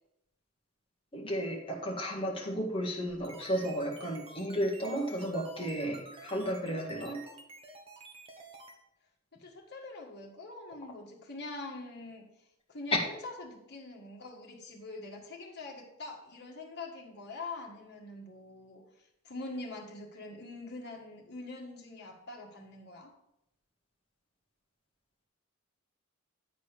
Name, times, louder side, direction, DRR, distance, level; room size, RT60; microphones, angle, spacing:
voice 1, 1.1-7.2, equal, 25° left, -1 dB, 1.6 m, -33 dB
sound 1, 3.0-8.8, right 3 dB, 25° right, 1.1 m, -51 dB
voice 2, 9.3-18.8 19.2-23.1, left 2 dB, 50° left, 0 dB, 1.9 m, -44 dB
9.8 x 4.1 x 6.7 m, 0.83 s
head